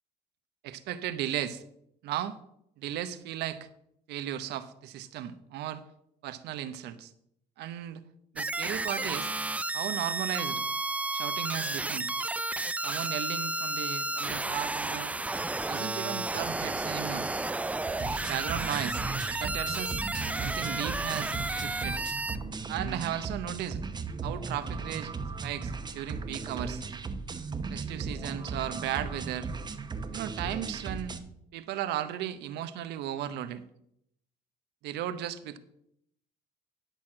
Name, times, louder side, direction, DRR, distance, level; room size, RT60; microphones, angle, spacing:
voice 1, 0.6-1.6 2.0-2.4 2.8-3.7 4.1-5.8 6.2-7.1 7.6-8.0 8.3-9.3 9.7-10.6 11.1-12.1 12.8-15.1 15.7-17.3 18.1-19.0 19.3-20.0 20.4-22.0 22.7-23.8 24.2-25.1 25.4-26.8 27.7-29.5 30.1-31.1 31.5-33.6 34.8-35.6, right 11 dB, 80° right, 11 dB, 0.9 m, -35 dB
sound 1, 8.4-22.4, right 2 dB, 10° right, 0.3 m, -32 dB
sound 2, 17.9-31.2, right 4 dB, 25° right, 0.9 m, -37 dB
11.0 x 4.3 x 7.5 m, 0.74 s
cardioid pair, 110°, 17 cm